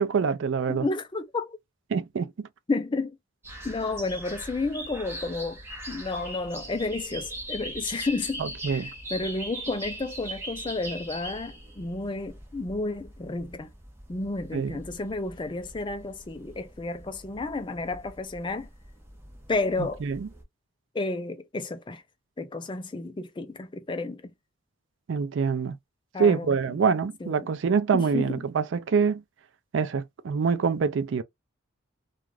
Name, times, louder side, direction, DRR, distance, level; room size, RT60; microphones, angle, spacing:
voice 1, 0.0-0.9 1.9-2.3 8.4-8.9 14.5-14.8 20.0-20.3 25.1-25.8 26.2-29.2 29.7-31.2, right 6 dB, 60° right, 0.4 m, -25 dB
voice 2, 0.7-1.6 2.7-3.1 3.6-5.6 5.9-8.4 8.7-13.7 14.1-18.7 19.5-20.0 20.9-22.0 22.4-24.2 26.1-26.6 27.2-27.4 27.9-28.4, left 3 dB, 25° left, 0.4 m, -31 dB
sound 1, 3.4-20.4, right 1 dB, 10° right, 0.8 m, -41 dB
2.4 x 2.3 x 3.1 m
head